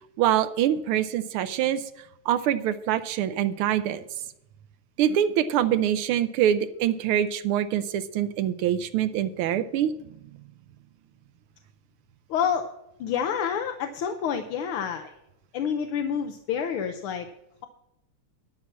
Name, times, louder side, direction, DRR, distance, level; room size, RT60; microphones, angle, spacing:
voice 1, 0.2-1.8 2.3-4.0 5.0-9.9, right 10 dB, 80° right, 11 dB, 1.5 m, -24 dB
voice 2, 12.3-12.7 13.0-15.2 15.5-17.3, left 7 dB, 80° left, 5 dB, 1.6 m, -28 dB
11.5 x 5.8 x 7.3 m, 0.82 s
omnidirectional pair, 2.4 m